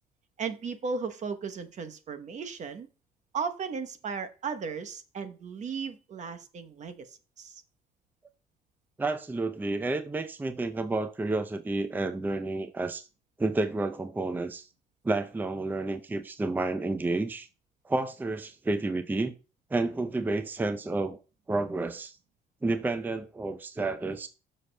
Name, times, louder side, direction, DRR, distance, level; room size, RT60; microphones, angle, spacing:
voice 1, 0.4-2.9 3.3-7.6, right 5 dB, 45° right, 0.9 m, -36 dB
voice 2, 9.0-13.1 13.4-14.7 15.0-17.5 17.8-19.3 19.7-21.2 21.5-22.2 22.6-24.3, right 2 dB, 10° right, 0.5 m, -30 dB
15.5 x 6.5 x 2.2 m
cardioid pair, 110°, 17 cm